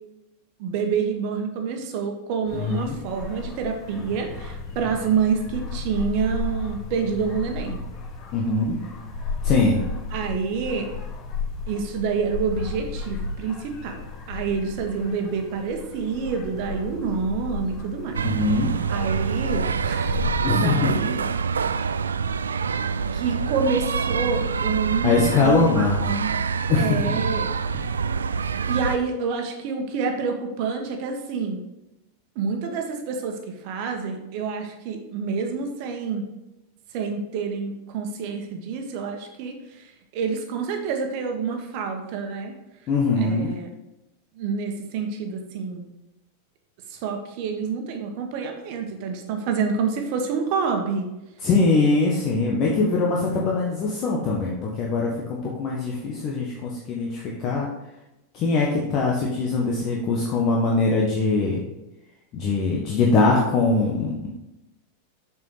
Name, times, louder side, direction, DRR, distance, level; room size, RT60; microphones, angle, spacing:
voice 1, 0.6-7.8 10.1-10.9 11.7-18.2 18.9-20.2 20.5-21.2 23.1-26.3 26.8-27.5 28.7-31.6 32.3-36.3 36.9-42.5 43.2-43.7 44.4-45.9 46.9-51.1, right 5 dB, 45° right, 4 dB, 1.5 m, -27 dB
sound 1, 2.4-20.5, left 3 dB, 55° left, 3.3 m, -34 dB
voice 2, 2.5-3.0 8.3-8.8 9.4-9.8 18.2-18.7 20.4-21.0 25.0-26.0 26.7-27.0 27.7-27.9 42.9-43.5 51.4-57.7 58.3-61.6 62.3-64.3, left 3 dB, 35° left, -2 dB, 1.4 m, -22 dB
sound 2, 18.1-29.0, right 6 dB, 70° right, 0.4 m, -26 dB
7.3 x 6.3 x 5.0 m, 0.96 s
figure-of-eight pair, 90°, 0 cm